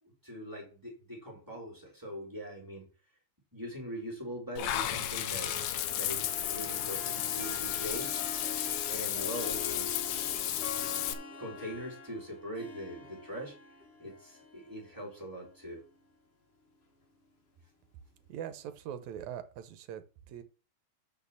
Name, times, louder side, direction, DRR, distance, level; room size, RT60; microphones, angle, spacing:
voice 1, 0.0-2.9 3.5-5.5 5.9-8.1 8.9-9.9 11.4-13.6 14.0-15.8, equal, 5° right, 3.7 m, -42 dB
Harp, 4.6-16.1, left 3 dB, 90° left, 0.5 m, -45 dB
Water / Bathtub (filling or washing), 4.6-11.1, left 11 dB, 75° left, 1.9 m, -33 dB
voice 2, 18.3-20.4, right 9 dB, 75° right, 2.2 m, -42 dB
6.5 x 5.5 x 7.1 m
omnidirectional pair, 3.4 m